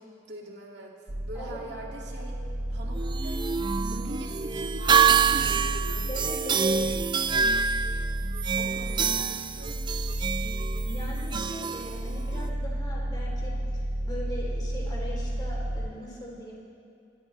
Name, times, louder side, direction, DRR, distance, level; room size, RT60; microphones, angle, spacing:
voice 1, 0.0-6.1 8.6-9.8, right 1 dB, 65° right, -2 dB, 2.5 m, -42 dB
sound 1, 1.1-15.9, right 1 dB, 50° right, 1.0 m, -33 dB
sound 2, 2.9-12.5, right 6 dB, 25° right, 0.3 m, -27 dB
voice 2, 6.1-6.8 10.9-16.5, equal, 25° left, -4 dB, 3.5 m, -40 dB
25.0 x 13.5 x 3.4 m, 2.6 s
head